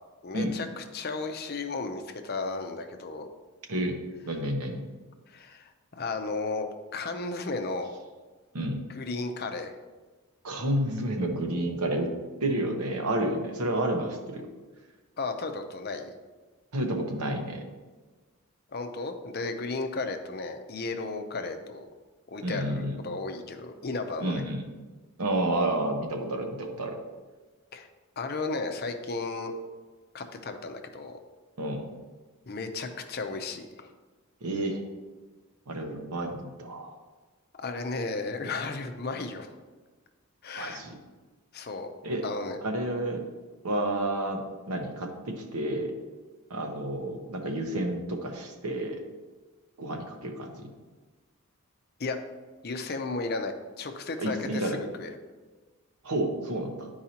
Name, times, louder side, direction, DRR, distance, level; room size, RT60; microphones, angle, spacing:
voice 1, 0.2-3.3 5.3-6.7 6.9-7.9 8.9-9.8 15.2-16.1 18.7-21.9 22.3-24.4 27.7-27.9 28.2-29.5 30.1-31.2 32.5-33.9 37.5-39.5 40.4-40.8 41.5-41.9 42.2-42.6 52.0-52.2 52.6-55.1, left 3 dB, 45° left, 6 dB, 0.6 m, -34 dB
voice 2, 4.3-4.9 8.5-8.8 10.4-12.1 12.4-14.5 16.7-17.6 22.4-23.0 24.2-24.7 25.2-27.0 31.6-31.9 34.4-34.8 35.7-36.9 40.6-40.9 42.0-42.2 42.6-43.2 43.6-45.9 46.5-49.0 49.8-50.7 54.2-54.8 56.0-56.9, right 1 dB, 90° right, 3 dB, 1.0 m, -30 dB
10.5 x 4.7 x 2.9 m, 1.3 s
head